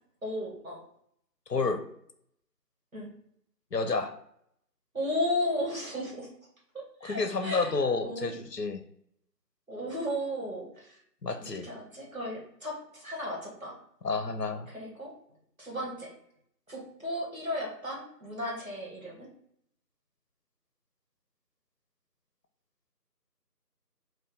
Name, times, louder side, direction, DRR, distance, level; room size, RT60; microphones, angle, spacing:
voice 1, 0.2-0.8 2.9-3.1 4.9-6.3 6.7-7.7 8.0-8.4 9.7-11.0 11.6-13.8 14.7-15.1 15.6-16.1 16.7-19.3, left 1 dB, 55° right, -3 dB, 1.6 m, -34 dB
voice 2, 1.5-1.9 3.7-4.1 7.0-8.8 11.2-11.7 14.0-14.7, left 4 dB, 75° left, 7 dB, 0.7 m, -30 dB
3.9 x 2.6 x 3.5 m, 0.70 s
figure-of-eight pair, 180°, 49 cm